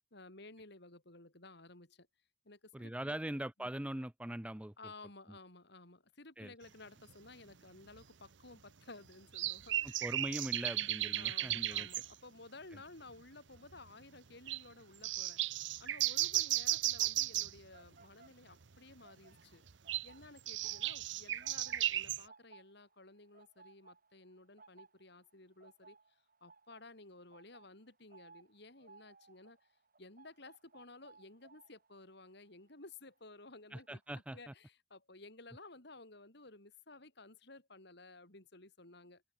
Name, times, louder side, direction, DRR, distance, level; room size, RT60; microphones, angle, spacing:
voice 1, 0.0-2.1 2.4-3.2 3.6-3.7 4.8-10.0 11.2-15.4 15.8-19.6 20.0-29.6 30.0-39.2, left 2 dB, 65° left, 5.0 m, -55 dB
voice 2, 2.7-4.7 5.3-5.4 6.4-6.5 9.8-11.9 33.7-34.5, right 1 dB, 5° right, 0.5 m, -42 dB
sound 1, 7.1-7.2 8.0-8.1 9.3-12.1 12.7-12.8 13.1-13.2 13.6-13.9 14.5-14.6 15.0-17.6 19.7-22.2, right 14 dB, 75° right, 0.8 m, -35 dB
sound 2, 16.5-18.7 19.0-33.9 34.1-34.5, right 4 dB, 50° right, 7.1 m, -62 dB
head